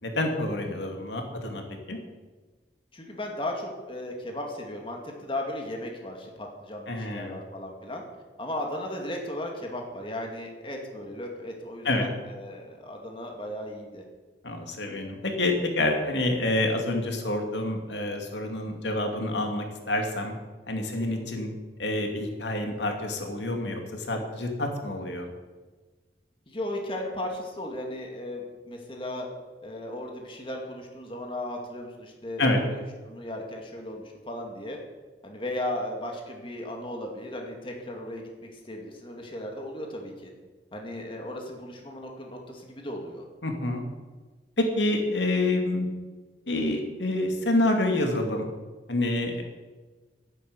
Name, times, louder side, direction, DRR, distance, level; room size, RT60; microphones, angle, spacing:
voice 1, 0.0-1.6 1.9-2.0 6.9-7.3 11.8-12.0 14.4-20.3 20.7-21.5 21.8-25.3 32.4-32.6 43.4-43.8 44.6-45.9 46.5-48.5 48.9-49.4, left 1 dB, 85° left, 3 dB, 2.4 m, -27 dB
voice 2, 2.9-8.0 8.4-14.0 20.9-21.3 26.5-29.3 29.6-34.8 35.2-40.3 40.7-43.2 49.2-49.4, left 1 dB, 30° left, 1 dB, 2.3 m, -36 dB
11.0 x 10.5 x 8.1 m, 1.3 s
head